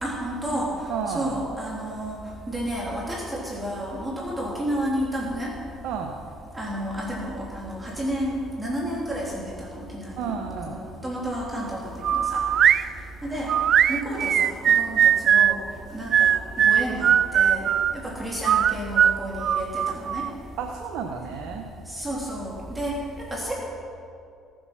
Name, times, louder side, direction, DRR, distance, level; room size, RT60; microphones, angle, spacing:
voice 1, 0.0-0.7 1.1-2.2 2.5-5.5 6.5-10.4 10.7-12.4 13.2-13.5 13.9-15.6 15.9-17.7 17.9-20.3 21.9-23.5, equal, 15° right, -4 dB, 2.9 m, -31 dB
voice 2, 0.9-1.4 5.8-6.1 10.2-10.8 20.6-21.7, right 6 dB, 75° right, 3 dB, 1.0 m, -31 dB
sound 1, 12.0-12.8 13.5-15.6 16.1-17.9 18.4-20.3, right 9 dB, 55° right, 0.3 m, -19 dB
17.0 x 8.0 x 5.7 m, 2.5 s
supercardioid pair, 75°, 0 cm